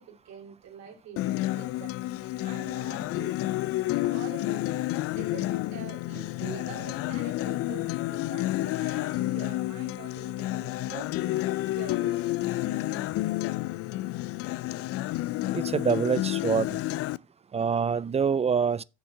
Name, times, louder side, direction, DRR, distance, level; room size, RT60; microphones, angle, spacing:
voice 1, 0.0-2.1 2.4-3.4 4.1-4.8 5.1-11.4 11.7-13.2, right 7 dB, 65° right, 2.8 m, -45 dB
Acoustic guitar, 1.2-17.2, left 17 dB, 50° left, 0.4 m, -30 dB
voice 2, 15.5-16.8 17.5-18.8, right 6 dB, 20° right, 0.4 m, -25 dB
6.9 x 6.7 x 6.1 m
hypercardioid pair, 65°, 30 cm